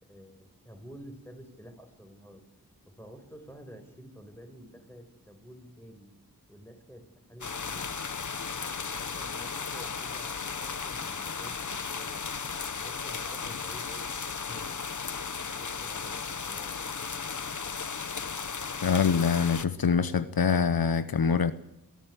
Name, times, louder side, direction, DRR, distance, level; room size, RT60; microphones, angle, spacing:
voice 1, 0.0-2.4 2.9-6.1 6.5-8.3 8.9-12.2 12.8-14.1 14.4-15.0 15.4-16.9, equal, 5° left, 5.3 m, -50 dB
sound 1, 7.4-19.7, left 5 dB, 55° left, 1.1 m, -35 dB
voice 2, 18.8-21.5, left 6 dB, 80° left, 0.9 m, -24 dB
22.5 x 15.0 x 8.1 m
wide cardioid pair, 50°, 35 cm